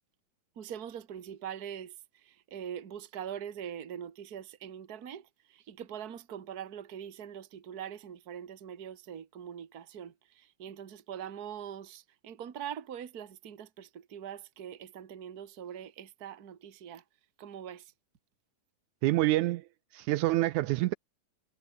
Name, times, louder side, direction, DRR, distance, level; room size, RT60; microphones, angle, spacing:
voice 1, 0.5-17.0 17.4-17.9, right 9 dB, 35° right, 1.7 m, -43 dB
voice 2, 19.0-20.9, right 17 dB, 80° right, 1.8 m, -27 dB
omnidirectional pair, 3.8 m